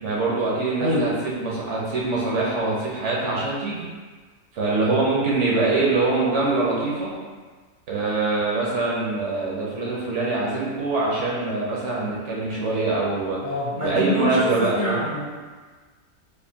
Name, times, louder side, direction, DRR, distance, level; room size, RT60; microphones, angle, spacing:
voice 1, 0.0-3.9 4.5-7.1 7.9-13.4 13.8-15.0, right 3 dB, 60° right, -5 dB, 0.9 m, -24 dB
voice 2, 13.4-15.2, left 1 dB, 45° left, -10 dB, 0.7 m, -25 dB
4.4 x 2.5 x 2.7 m, 1.4 s
omnidirectional pair, 1.6 m